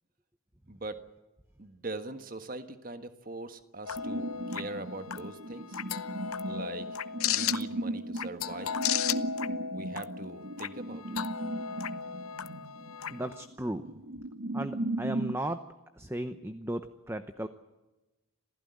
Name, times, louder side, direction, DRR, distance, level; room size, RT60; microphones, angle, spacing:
voice 1, 0.7-1.0 1.6-5.8 6.4-6.9 7.3-8.8 9.7-11.2, right 2 dB, 40° right, 9 dB, 1.5 m, -42 dB
sound 1, 3.8-13.4, left 8 dB, 90° left, 0.8 m, -35 dB
addsynth stereo flange, 4.0-15.4, right 1 dB, 65° right, 1.4 m, -37 dB
voice 2, 13.1-13.8 14.5-15.6 16.0-17.5, right 1 dB, 10° right, 9 dB, 0.8 m, -35 dB
26.5 x 15.5 x 9.6 m, 1.1 s
head